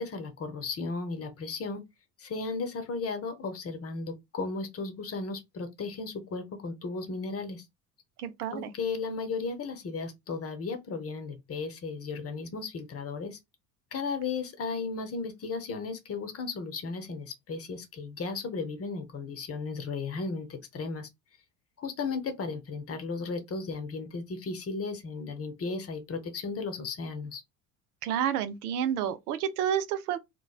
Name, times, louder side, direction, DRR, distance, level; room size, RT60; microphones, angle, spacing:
voice 1, 0.0-1.8 2.2-7.6 8.5-13.4 13.9-21.1 21.8-27.4, left 4 dB, 30° left, 0.8 m, -35 dB
voice 2, 8.2-8.7 28.0-30.2, right 9 dB, 75° right, 0.6 m, -30 dB
3.1 x 2.1 x 2.3 m
hypercardioid pair, 65°, 46 cm